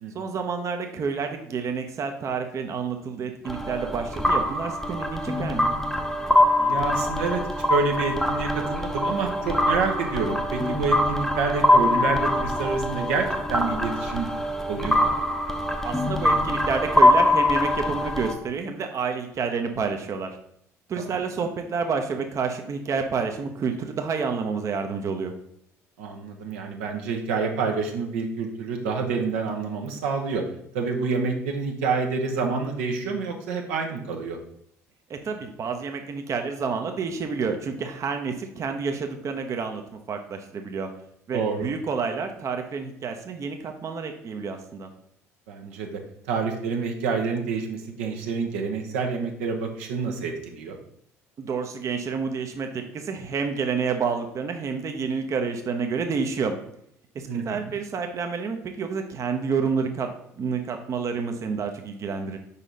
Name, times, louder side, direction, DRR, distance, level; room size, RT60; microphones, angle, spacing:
voice 1, 0.1-5.7 15.8-20.4 20.9-25.3 35.1-39.8 40.1-40.9 41.3-44.9 51.4-56.6 57.1-60.1 60.4-62.4, right 5 dB, 40° right, 5 dB, 0.7 m, -29 dB
sound 1, 3.5-18.3, left 1 dB, 5° left, 0.8 m, -23 dB
voice 2, 6.6-7.4 7.7-14.3 14.7-15.1 21.0-21.2 26.0-30.4 30.7-34.4 41.3-41.7 45.5-50.8 57.3-57.7, right 4 dB, 75° right, 3 dB, 0.9 m, -28 dB
4.9 x 4.2 x 5.2 m, 0.72 s
hypercardioid pair, 60°, 8 cm